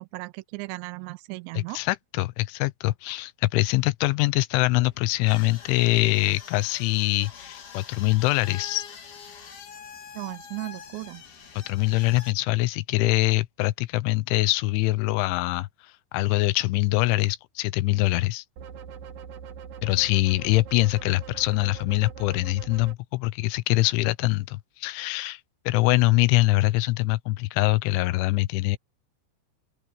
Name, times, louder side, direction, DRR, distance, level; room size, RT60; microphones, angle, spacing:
voice 1, 0.0-1.8 10.1-11.2, right 25 dB, 90° right, 2.5 m, -36 dB
voice 2, 1.5-8.8 11.6-18.4 19.8-25.4 25.7-28.8, left 20 dB, 80° left, 2.9 m, -24 dB
sound 1, 4.5-12.3, left 7 dB, 50° left, 5.0 m, -44 dB
sound 2, 18.6-22.9, right 7 dB, 60° right, 2.4 m, -42 dB
open air
omnidirectional pair, 5.9 m